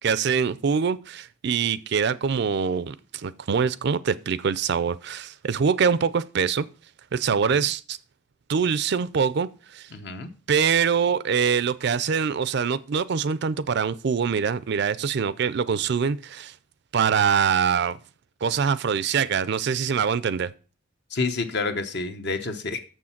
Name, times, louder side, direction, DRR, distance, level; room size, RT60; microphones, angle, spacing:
voice 1, 0.0-6.7 7.1-8.0 8.5-9.9 10.5-16.5 16.9-18.0 18.4-20.5, right 6 dB, 60° right, 0.4 m, -24 dB
voice 2, 9.9-10.3 21.1-22.9, left 3 dB, 60° left, 1.0 m, -29 dB
7.1 x 6.3 x 5.8 m
head